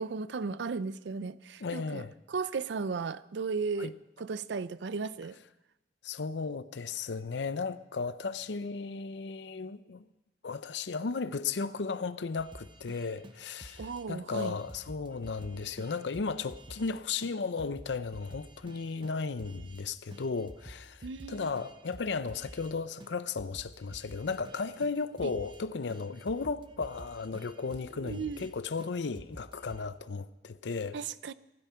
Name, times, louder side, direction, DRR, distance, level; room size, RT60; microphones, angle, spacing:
voice 1, 0.0-3.9 4.2-5.4 13.8-14.6 21.0-21.5 25.2-25.3 27.9-28.5 30.9-31.3, right 4 dB, 85° right, 0.5 m, -35 dB
voice 2, 1.6-2.1 3.8-3.9 6.0-10.0 10.4-31.0, left 4 dB, 85° left, 0.6 m, -35 dB
sound 1, 12.4-14.0 14.3-16.9 17.2-17.3 17.6-19.8 20.1-22.7 23.0-23.1 23.4-25.6 25.9-28.5 28.8-28.9 29.1-29.8, right 1 dB, 30° right, 0.9 m, -50 dB
15.0 x 13.0 x 5.6 m
head